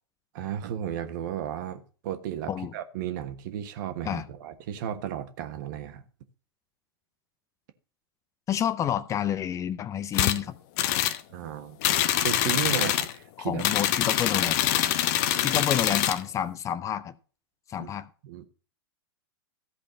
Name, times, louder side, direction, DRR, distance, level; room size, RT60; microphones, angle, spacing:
voice 1, 0.3-6.0 11.3-11.9 12.2-13.6 15.5-15.6 17.8-17.9 18.2-18.5, right 10 dB, 50° right, 1.4 m, -34 dB
voice 2, 8.5-10.6 13.4-14.7 15.4-17.1 17.7-18.1, left 9 dB, 25° left, 0.7 m, -29 dB
sound 1, 10.1-10.4 10.8-11.2 11.8-13.1 13.6-16.2, left 12 dB, 45° left, 0.9 m, -24 dB
14.5 x 5.1 x 6.4 m
figure-of-eight pair, 100°, 13 cm